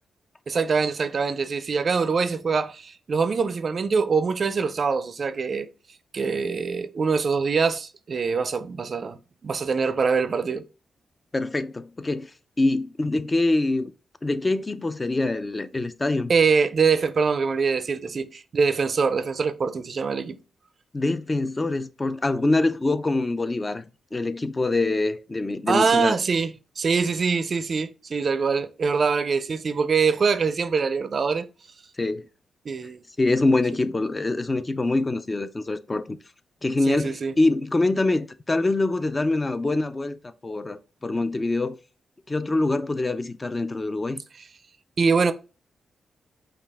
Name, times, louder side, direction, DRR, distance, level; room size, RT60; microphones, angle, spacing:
voice 1, 0.5-5.7 6.1-10.6 16.3-20.4 25.7-31.5 32.7-33.0 36.9-37.3 45.0-45.3, right 5 dB, 55° right, 0.4 m, -24 dB
voice 2, 11.3-12.3 12.6-13.9 14.2-16.3 20.9-23.8 24.1-26.2 32.0-32.3 33.2-36.2 36.6-41.8 42.3-44.2, left 2 dB, 30° left, 0.4 m, -24 dB
5.2 x 2.4 x 3.4 m
cardioid pair, 75°, 0 cm